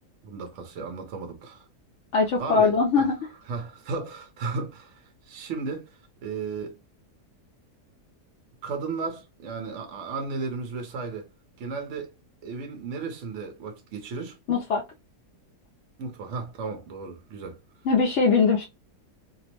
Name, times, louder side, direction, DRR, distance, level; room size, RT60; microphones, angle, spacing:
voice 1, 0.2-1.6 2.4-3.1 3.5-6.8 8.6-11.3 11.6-12.1 12.4-14.4 16.0-17.6, right 4 dB, 60° right, 0.9 m, -34 dB
voice 2, 2.1-3.3 14.5-14.8 17.8-18.6, left 4 dB, 70° left, 0.7 m, -21 dB
2.8 x 2.0 x 2.9 m
omnidirectional pair, 1.7 m